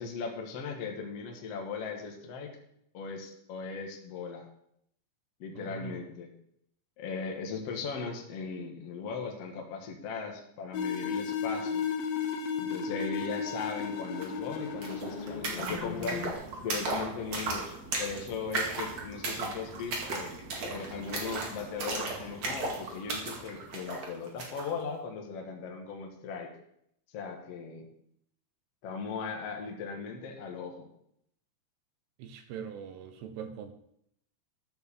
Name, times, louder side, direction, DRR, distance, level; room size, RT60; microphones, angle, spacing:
voice 1, 0.0-2.5 2.9-4.5 5.4-6.3 7.0-11.8 12.6-16.3 16.6-17.7 18.0-20.4 20.7-26.5 27.1-27.9 28.8-30.9, left 5 dB, 55° left, 2 dB, 1.8 m, -38 dB
voice 2, 5.6-6.0 32.2-33.7, right 7 dB, 80° right, 8 dB, 2.8 m, -42 dB
sound 1, 10.7-16.3, left 6 dB, 70° left, 2.4 m, -34 dB
sound 2, 14.2-14.3 14.5-24.7, right 3 dB, 45° right, 2.8 m, -36 dB
13.5 x 5.7 x 6.9 m, 0.74 s
omnidirectional pair, 5.1 m